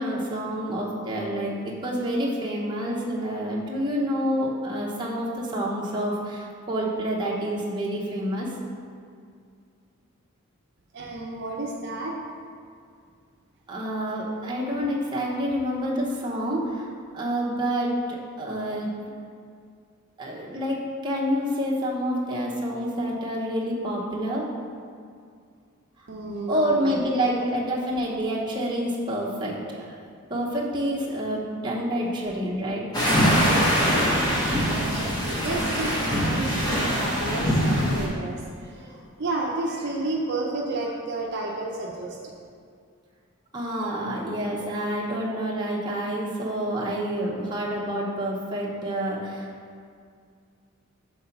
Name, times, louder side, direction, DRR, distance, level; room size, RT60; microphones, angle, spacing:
voice 1, 0.0-8.5 13.7-16.9 17.1-18.9 20.2-24.4 26.5-29.9 30.3-32.8 43.5-49.5, equal, 20° right, -4 dB, 0.8 m, -28 dB
voice 2, 10.9-12.2 26.1-27.3 33.3-34.2 34.5-42.3, right 2 dB, 50° right, -1 dB, 0.5 m, -32 dB
sound 1, 32.9-38.1, equal, 20° left, 1.0 m, -23 dB
5.5 x 3.8 x 5.8 m, 2.3 s
head